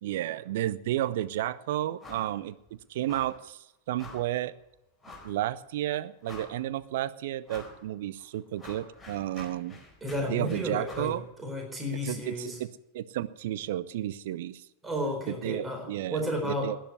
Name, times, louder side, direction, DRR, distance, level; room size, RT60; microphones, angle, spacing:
voice 1, 0.0-2.5 2.9-4.5 5.2-9.8 10.3-11.2 12.0-12.5 12.9-14.7 15.3-16.2 16.4-16.8, right 13 dB, 55° right, 16 dB, 0.6 m, -32 dB
sound 1, 2.0-2.4 2.6-2.7 3.1-3.4 4.0-4.3 5.0-5.4 5.8-5.9 6.2-6.8 7.5-7.8 8.2-11.2, left 3 dB, 5° left, 4.5 m, -48 dB
voice 2, 10.0-12.6 14.8-16.7, equal, 10° right, 2 dB, 4.2 m, -33 dB
12.0 x 10.0 x 9.5 m, 0.87 s
figure-of-eight pair, 90°, 0 cm